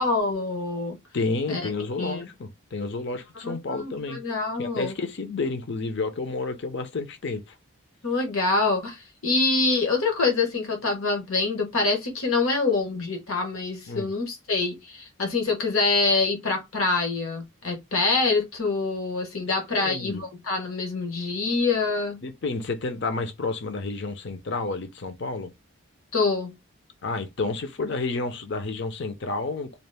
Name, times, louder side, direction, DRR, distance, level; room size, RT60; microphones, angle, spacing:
voice 1, 0.0-1.0 1.5-1.6 2.0-2.2 3.4-4.9 8.0-22.2 26.1-26.5, left 3 dB, 80° left, 1.2 m, -25 dB
voice 2, 1.1-4.2 4.6-7.5 13.9-14.1 19.5-20.2 22.2-25.5 27.0-29.8, left 3 dB, 55° left, 0.6 m, -30 dB
4.0 x 2.5 x 3.3 m
head